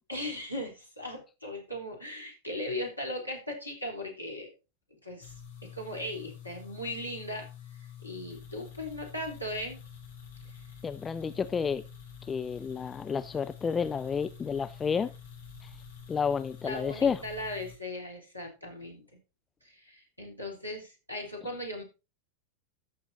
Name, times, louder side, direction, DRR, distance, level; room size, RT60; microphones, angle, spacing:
voice 1, 0.1-4.5 5.0-5.3 5.6-9.8 10.5-10.6 16.6-19.0 19.6-21.8, left 1 dB, 85° left, 3.6 m, -38 dB
sound 1, 5.2-17.8, left 8 dB, 65° left, 4.4 m, -48 dB
voice 2, 10.8-11.8 12.3-15.1 15.6-15.7 16.1-17.2, left 6 dB, 20° left, 0.4 m, -30 dB
14.0 x 6.2 x 4.1 m
figure-of-eight pair, 90°, 0 cm